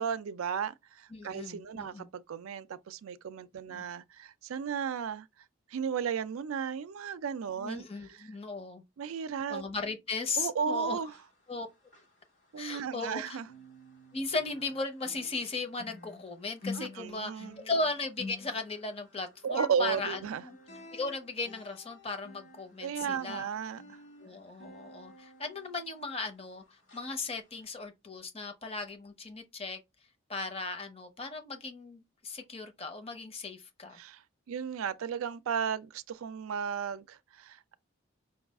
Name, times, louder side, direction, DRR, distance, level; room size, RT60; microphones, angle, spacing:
voice 1, 0.0-5.3 5.7-7.8 9.0-9.6 10.4-11.1 12.5-13.5 16.8-17.6 19.4-20.4 22.8-24.0 34.0-34.2 34.5-37.7, right 7 dB, 85° right, 0.4 m, -34 dB
voice 2, 1.1-2.1 3.7-3.8 7.6-8.8 9.5-11.0 11.5-11.7 12.6-13.4 14.1-20.6 20.9-23.5 24.2-29.8 30.3-34.0, left 3 dB, 30° left, 0.7 m, -37 dB
sound 1, 11.0-13.1 13.4-26.5 26.9-27.1 27.6-27.7, left 3 dB, 60° left, 1.8 m, -49 dB
5.3 x 2.3 x 3.5 m
head